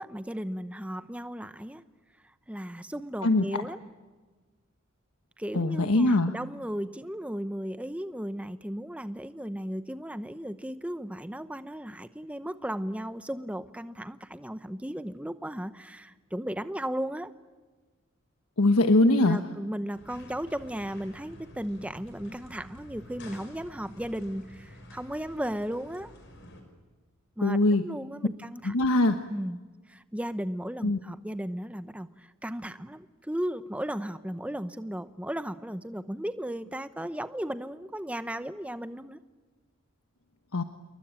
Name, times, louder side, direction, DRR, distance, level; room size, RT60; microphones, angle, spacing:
voice 1, 0.0-1.8 2.5-3.8 5.4-17.3 19.0-26.1 27.4-28.7 29.3-29.6 29.9-32.1 32.4-39.2, equal, 5° right, 12 dB, 0.9 m, -35 dB
voice 2, 5.5-6.3 18.6-19.4 27.4-27.8 28.6-29.2 30.8-31.0 40.5-40.6, left 2 dB, 80° left, 7 dB, 1.2 m, -22 dB
sound 1, 19.9-26.6, equal, 55° left, 5.5 m, -50 dB
28.5 x 22.5 x 9.0 m, 1.3 s
head